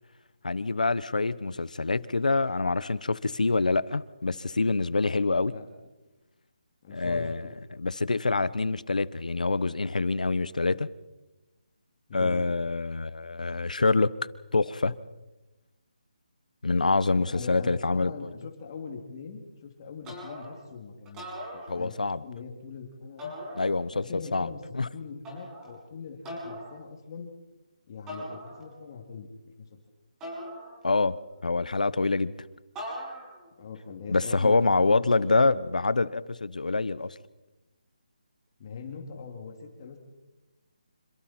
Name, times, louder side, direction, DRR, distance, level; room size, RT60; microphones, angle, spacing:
voice 1, 0.4-5.5 6.9-7.4 7.8-10.9 12.1-14.1 14.5-14.9 16.6-18.1 21.7-22.2 23.6-24.0 24.3-24.9 30.8-31.2 31.4-32.3 34.1-37.1, left 3 dB, 85° left, 17 dB, 1.1 m, -26 dB
voice 2, 6.8-7.5 12.1-12.5 17.2-23.4 23.9-24.6 24.9-27.3 27.9-29.3 29.6-29.8 33.6-35.6 38.6-40.0, left 5 dB, 35° left, 3 dB, 2.8 m, -41 dB
sound 1, 20.0-20.7 21.1-22.2 23.2-24.1 25.2-25.8 26.2-26.8 28.1-28.9 30.2-31.2 32.8-33.5, equal, 10° right, 6.3 m, -40 dB
27.0 x 26.5 x 4.5 m, 1.1 s
hypercardioid pair, 165°, 4 cm